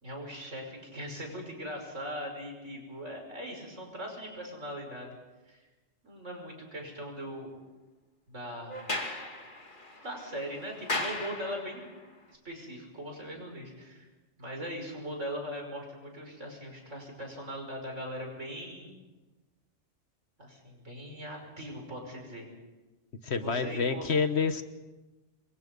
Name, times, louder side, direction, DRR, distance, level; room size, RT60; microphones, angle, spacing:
voice 1, 0.0-5.1 5.5-5.7 6.0-7.5 8.3-8.8 10.0-11.9 12.3-14.1 14.4-18.9 20.4-22.5 23.3-24.1, equal, 75° right, 1 dB, 6.1 m, -40 dB
Sliding door, 8.7-12.0, left 2 dB, 40° left, 2.4 m, -37 dB
voice 2, 23.2-24.6, left 5 dB, 60° left, 9 dB, 1.5 m, -28 dB
27.5 x 23.0 x 5.4 m, 1.2 s
omnidirectional pair, 1.3 m